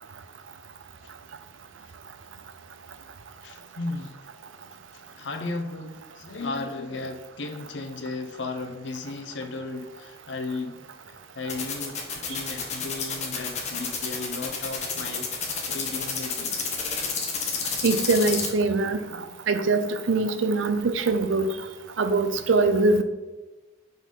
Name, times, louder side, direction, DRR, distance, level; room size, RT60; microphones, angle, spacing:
voice 1, 3.4-4.2 4.9-12.0 12.3-15.3 15.7-16.6 18.9-19.3, left 3 dB, 65° left, 0.7 m, -35 dB
sound 1, 11.5-18.5, left 6 dB, 35° left, 1.0 m, -29 dB
voice 2, 17.8-21.6 22.0-23.0, right 3 dB, 90° right, 0.5 m, -23 dB
5.1 x 3.9 x 5.2 m
head